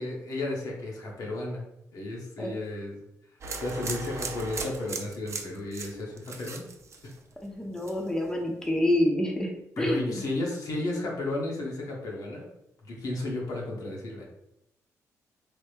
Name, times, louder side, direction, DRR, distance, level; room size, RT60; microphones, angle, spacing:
voice 1, 0.0-1.6 1.9-3.0 3.6-6.7 7.0-7.1 9.8-12.5 12.8-14.3, left 2 dB, 70° left, -2 dB, 1.0 m, -33 dB
sound 1, 3.4-7.5 7.8-8.2, right 4 dB, 45° right, 0.5 m, -38 dB
voice 2, 7.4-9.5 9.8-10.2, left 1 dB, 10° left, 0 dB, 0.6 m, -27 dB
3.3 x 2.0 x 3.3 m, 0.82 s
cardioid pair, 75°, 7 cm